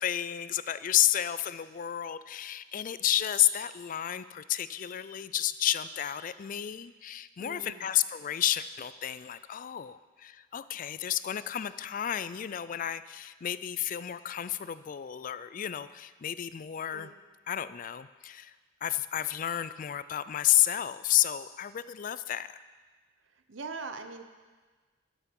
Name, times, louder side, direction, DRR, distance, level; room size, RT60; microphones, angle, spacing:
voice 1, 0.0-17.1 17.5-18.5 18.8-22.6, left 12 dB, 40° left, 15 dB, 0.3 m, -31 dB
voice 2, 7.4-7.9 16.9-17.1 23.5-24.2, right 4 dB, 70° right, 8 dB, 0.8 m, -41 dB
12.5 x 7.3 x 5.3 m, 1.4 s
head